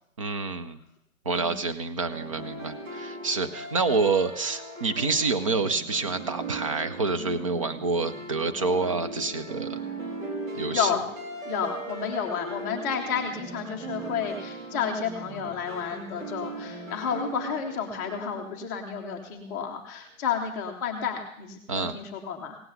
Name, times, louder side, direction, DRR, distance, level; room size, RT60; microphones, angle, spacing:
voice 1, 0.2-0.8 1.3-9.8 10.5-10.9 21.7-22.0, right 4 dB, 25° right, 10 dB, 0.5 m, -27 dB
sound 1, 2.1-19.0, right 3 dB, 70° right, 4.5 m, -38 dB
voice 2, 10.7-11.1 11.4-22.6, left 7 dB, 15° left, 1 dB, 0.7 m, -31 dB
17.0 x 7.6 x 7.9 m, 0.71 s
hypercardioid pair, 155°, 42 cm